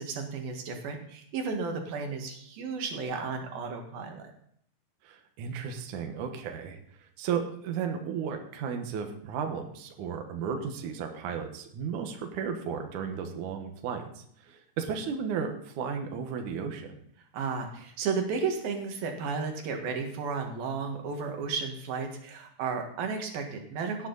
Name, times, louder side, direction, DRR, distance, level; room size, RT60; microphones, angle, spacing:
voice 1, 0.0-4.3 17.3-24.1, right 5 dB, 60° right, 3 dB, 3.0 m, -33 dB
voice 2, 5.0-17.0, right 6 dB, 80° right, 4 dB, 1.7 m, -34 dB
17.5 x 9.2 x 4.0 m, 0.66 s
omnidirectional pair, 5.7 m